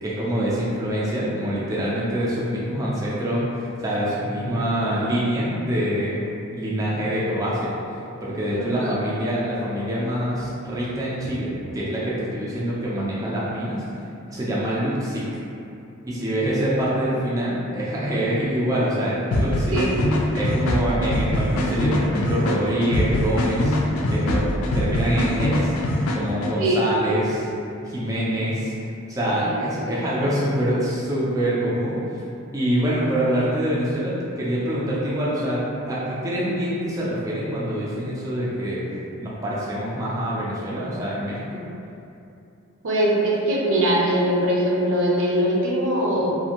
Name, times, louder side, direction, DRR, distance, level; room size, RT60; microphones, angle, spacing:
voice 1, 0.0-6.2 6.5-7.7 8.2-15.2 16.1-19.7 20.3-23.8 24.1-25.7 26.1-27.5 27.8-28.7 29.1-32.2 32.5-38.8 39.2-41.6, equal, 15° right, -8 dB, 0.3 m, -25 dB
voice 2, 8.6-8.9 19.7-19.9 26.5-26.8 29.5-30.3 42.8-46.3, right 1 dB, 65° right, -4 dB, 0.6 m, -22 dB
sound 1, 19.3-26.5, left 1 dB, 75° left, 0.3 m, -23 dB
2.5 x 2.4 x 2.8 m, 2.7 s
head